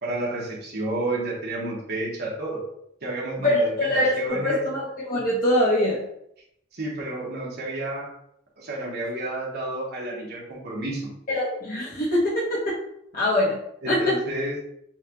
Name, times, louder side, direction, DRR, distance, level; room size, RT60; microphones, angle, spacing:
voice 1, 0.0-2.6 3.0-4.6 6.7-8.1 8.6-11.1 13.8-14.6, right 2 dB, 55° right, -3 dB, 1.1 m, -30 dB
voice 2, 3.4-6.0 11.3-12.8 13.1-13.6 13.9-14.2, left 1 dB, 50° left, -8 dB, 1.1 m, -23 dB
5.6 x 2.4 x 2.9 m, 0.75 s
head